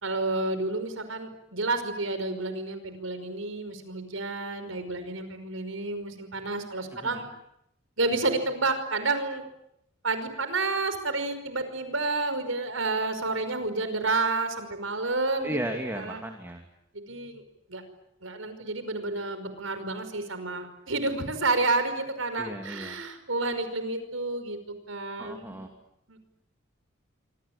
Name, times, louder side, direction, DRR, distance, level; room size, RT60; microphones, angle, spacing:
voice 1, 0.0-7.3 8.0-9.4 10.0-15.6 15.9-16.2 16.9-17.4 17.7-17.8 18.2-24.6 24.9-25.6 26.1-26.2, right 3 dB, 85° right, 10 dB, 5.4 m, -30 dB
voice 2, 15.4-16.7 22.4-23.0 25.2-25.7, right 1 dB, 10° right, 4 dB, 2.7 m, -35 dB
26.5 x 25.5 x 8.8 m, 0.79 s
head